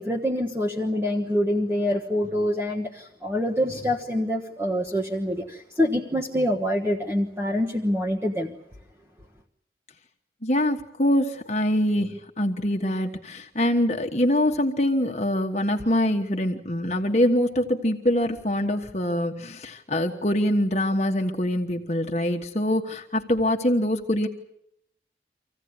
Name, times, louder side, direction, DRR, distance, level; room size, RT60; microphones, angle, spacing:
voice 1, 0.0-8.5, equal, 15° right, 1.3 m, -26 dB
voice 2, 10.4-24.3, left 1 dB, 40° left, 1.4 m, -24 dB
26.0 x 16.0 x 9.6 m
head